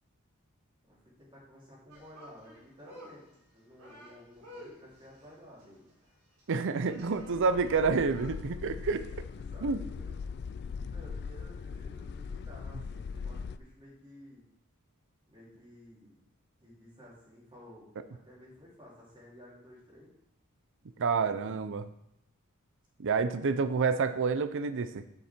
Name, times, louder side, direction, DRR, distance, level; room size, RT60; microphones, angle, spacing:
voice 1, 0.9-5.9 7.2-8.0 9.3-10.2 10.9-14.5 15.3-16.2 16.6-20.1, left 1 dB, 25° right, -5 dB, 3.1 m, -53 dB
sound 1, 1.9-8.4, equal, 75° right, 3.4 m, -52 dB
voice 2, 6.5-9.0 9.6-9.8 21.0-21.9 23.0-25.0, right 4 dB, 60° right, 12 dB, 0.5 m, -28 dB
sound 2, 7.0-13.6, left 5 dB, 50° left, 0.3 m, -40 dB
8.4 x 6.9 x 4.4 m, 0.77 s
head